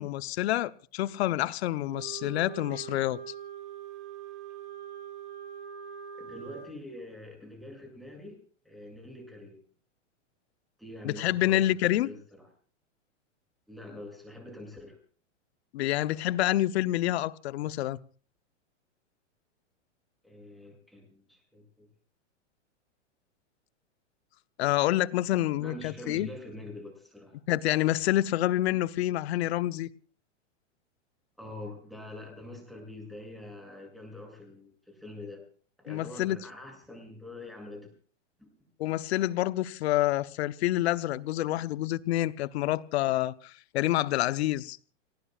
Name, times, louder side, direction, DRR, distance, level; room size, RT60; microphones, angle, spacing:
voice 1, 0.0-3.2 11.0-12.1 15.7-18.0 24.6-26.3 27.5-29.9 35.9-36.4 38.8-44.8, left 15 dB, 60° left, 0.8 m, -28 dB
Wind instrument woodwind instrument, 1.9-6.7, right 8 dB, 65° right, 5.4 m, -43 dB
voice 2, 6.2-8.4 8.6-9.6 10.8-12.2 13.7-15.0 20.2-21.9 25.6-27.4 31.4-35.4 35.8-37.9 38.4-38.5, left 1 dB, ahead, 7.4 m, -45 dB
29.0 x 18.5 x 2.4 m
hypercardioid pair, 125°, 37 cm